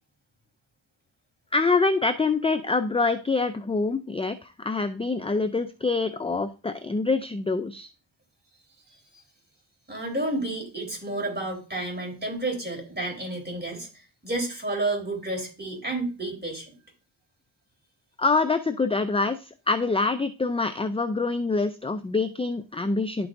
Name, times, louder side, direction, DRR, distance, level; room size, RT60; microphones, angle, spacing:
voice 1, 1.5-7.9 18.2-19.4 19.7-23.3, left 3 dB, 15° left, 10 dB, 0.3 m, -25 dB
voice 2, 9.9-16.8, right 2 dB, 20° right, 0 dB, 3.6 m, -31 dB
11.5 x 4.6 x 2.5 m, 0.34 s
cardioid pair, 65°, 48 cm